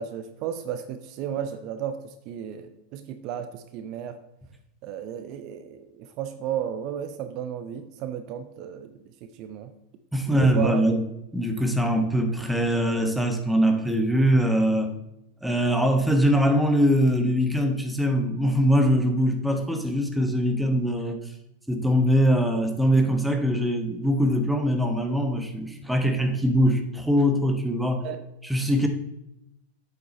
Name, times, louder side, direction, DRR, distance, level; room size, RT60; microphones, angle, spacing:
voice 1, 0.0-4.2 4.8-8.9 9.2-9.7 10.3-10.8 28.0-28.2, right 9 dB, 50° right, 9 dB, 0.7 m, -33 dB
voice 2, 10.1-11.0 11.3-14.9 15.4-21.2 21.7-28.1 28.4-28.9, equal, 5° right, 5 dB, 1.2 m, -22 dB
8.3 x 6.9 x 4.3 m, 0.85 s
hypercardioid pair, 100°, 0 cm